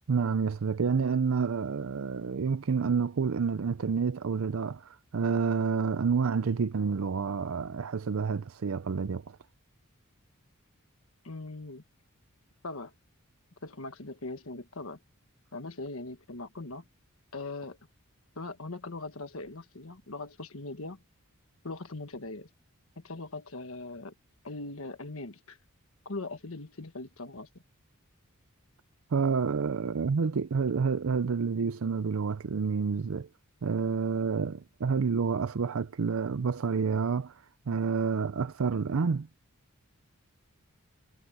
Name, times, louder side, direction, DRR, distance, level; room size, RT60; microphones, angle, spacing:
voice 1, 0.1-9.4 29.1-33.3 33.6-39.3, right 5 dB, 65° right, 0.5 m, -29 dB
voice 2, 11.2-11.8 12.6-12.9 13.6-15.0 15.5-16.8 17.3-17.8 18.3-21.0 21.6-22.5 23.0-24.1 24.4-25.6 26.0-27.5, left 2 dB, 65° left, 1.4 m, -40 dB
head